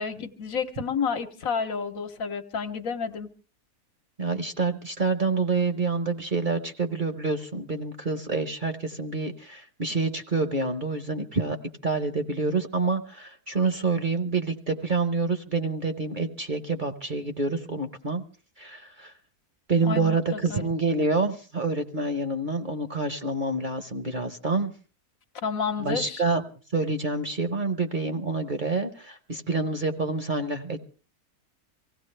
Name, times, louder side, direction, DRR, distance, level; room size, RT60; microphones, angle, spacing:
voice 1, 0.0-3.3 19.8-20.6 25.4-26.2, left 6 dB, 65° left, 7 dB, 1.4 m, -30 dB
voice 2, 4.2-11.6 11.8-18.2 18.6-19.1 19.7-24.7 25.8-26.4 26.7-30.8, right 3 dB, 40° right, 8 dB, 0.9 m, -27 dB
24.5 x 16.5 x 3.3 m, 0.37 s
omnidirectional pair, 1.6 m